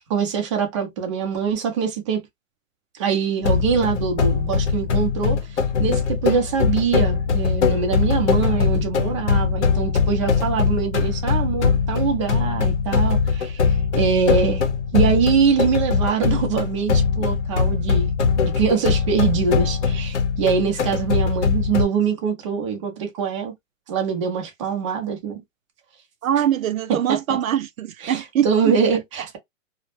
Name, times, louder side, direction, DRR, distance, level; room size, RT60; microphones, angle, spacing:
voice 1, 0.1-2.2 2.9-5.4 5.8-14.7 14.9-18.1 18.4-23.5 23.9-25.4 26.9-27.2 28.0-29.4, right 6 dB, 25° right, 0.5 m, -23 dB
sound 1, 3.4-21.8, left 5 dB, 60° left, 0.7 m, -21 dB
voice 2, 26.2-28.8, right 10 dB, 85° right, 0.5 m, -23 dB
2.1 x 2.0 x 3.0 m
hypercardioid pair, 150°, 40 cm